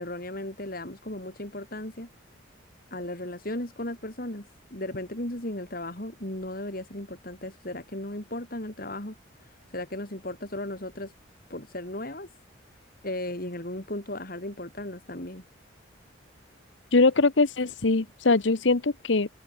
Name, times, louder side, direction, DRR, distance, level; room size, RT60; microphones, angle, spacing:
voice 1, 0.0-2.1 2.9-11.1 11.5-12.3 13.0-15.4, left 1 dB, 50° left, 4.3 m, -36 dB
voice 2, 16.9-19.3, left 3 dB, 70° left, 1.0 m, -22 dB
head